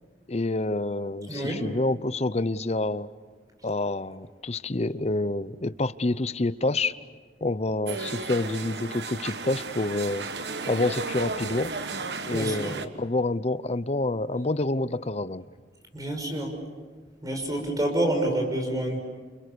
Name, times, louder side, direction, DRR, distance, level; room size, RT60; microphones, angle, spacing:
voice 1, 0.3-3.1 3.6-7.0 7.4-10.3 10.7-11.7 12.3-15.4, left 2 dB, 35° left, 14 dB, 0.8 m, -27 dB
voice 2, 1.3-1.7 12.3-12.8 15.9-16.6 17.2-19.0, right 1 dB, 20° right, 3 dB, 6.2 m, -28 dB
sound 1, 7.9-12.9, right 4 dB, 70° right, 1.4 m, -34 dB
29.5 x 29.0 x 6.9 m, 1.4 s
head